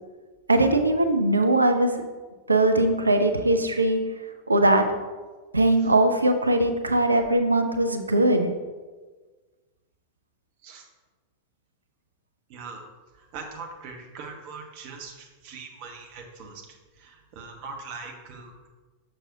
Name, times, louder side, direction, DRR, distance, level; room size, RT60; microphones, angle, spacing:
voice 1, 0.5-2.0 2.5-4.0 4.5-4.9 5.5-8.5, right 1 dB, 80° right, 7 dB, 0.5 m, -20 dB
voice 2, 12.5-12.8 13.3-16.6 17.0-18.7, right 4 dB, 45° right, 2 dB, 1.1 m, -41 dB
6.6 x 5.9 x 2.7 m, 1.3 s
figure-of-eight pair, 90°, 0 cm